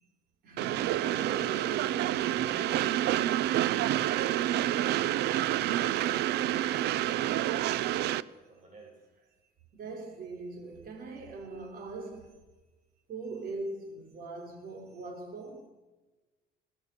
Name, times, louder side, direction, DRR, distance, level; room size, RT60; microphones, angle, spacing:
voice 1, 0.4-3.6 9.7-12.4 13.1-15.7, right 3 dB, 65° right, 5.4 m, -41 dB
Train, 0.6-8.2, right 13 dB, 80° right, 0.7 m, -28 dB
voice 2, 7.3-9.0, right 2 dB, 45° right, 7.4 m, -54 dB
22.0 x 19.5 x 6.8 m
cardioid pair, 110°, 17 cm